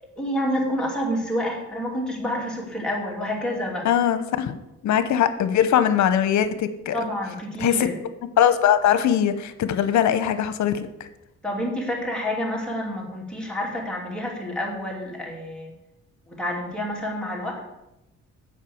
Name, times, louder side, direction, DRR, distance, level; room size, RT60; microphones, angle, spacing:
voice 1, 0.2-3.9 6.9-8.0 11.4-15.7 16.3-17.6, equal, 5° left, -3 dB, 2.8 m, -28 dB
voice 2, 3.8-4.6 4.8-7.0 7.6-7.9 8.4-10.9, left 9 dB, 70° left, 11 dB, 0.9 m, -21 dB
7.4 x 5.5 x 7.1 m, 0.91 s
cardioid pair, 90°, 30 cm